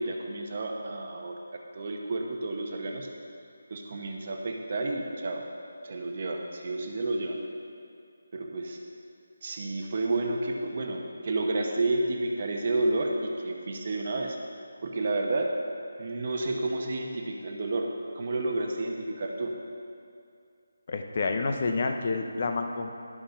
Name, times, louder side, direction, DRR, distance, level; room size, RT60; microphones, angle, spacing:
voice 1, 0.0-1.4 1.7-3.1 3.7-5.4 5.8-7.4 8.3-8.8 9.4-14.4 14.8-15.5 16.0-17.9 18.1-19.5, right 2 dB, 35° right, 2 dB, 1.0 m, -30 dB
voice 2, 20.9-22.9, left 3 dB, 40° left, 5 dB, 0.8 m, -29 dB
11.0 x 6.5 x 5.7 m, 2.4 s
figure-of-eight pair, 175°, 0 cm